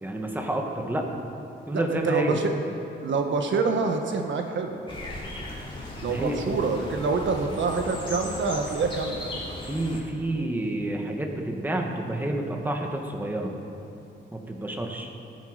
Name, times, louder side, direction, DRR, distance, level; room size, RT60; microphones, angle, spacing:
voice 1, 0.0-1.0 1.7-2.4 6.1-6.4 9.6-13.5 14.3-15.1, right 1 dB, 10° right, 2 dB, 1.3 m, -29 dB
voice 2, 1.7-2.5 3.0-4.8 6.0-9.3, right 4 dB, 70° right, 4 dB, 1.3 m, -26 dB
sound 1, 4.9-10.0, left 2 dB, 25° left, 2.7 m, -37 dB
19.0 x 9.3 x 5.0 m, 2.9 s
wide cardioid pair, 145°, 20 cm